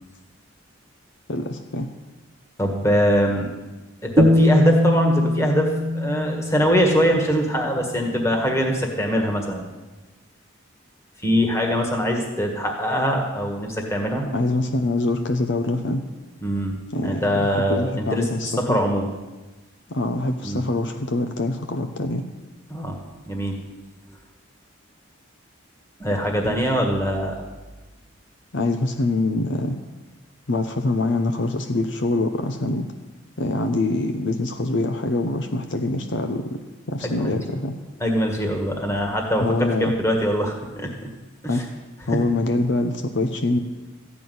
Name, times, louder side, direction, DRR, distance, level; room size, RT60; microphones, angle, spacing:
voice 1, 1.3-1.9 14.3-16.1 16.9-18.8 19.9-22.3 28.5-29.8 30.5-32.9 33.4-36.6 36.9-37.7 39.4-39.9 41.5-41.6 42.1-43.6, left 2 dB, 60° left, 6 dB, 0.7 m, -24 dB
voice 2, 2.6-3.5 4.0-9.6 11.2-14.2 16.4-19.1 20.4-20.6 22.7-23.0 23.3-23.6 26.0-27.4 37.0-37.4 38.0-40.9 41.4-41.6 42.1-42.2, equal, 15° left, 1 dB, 1.7 m, -23 dB
sound 1, 4.2-7.3, left 1 dB, 25° right, 0.6 m, -20 dB
13.5 x 6.0 x 9.4 m, 1.2 s
head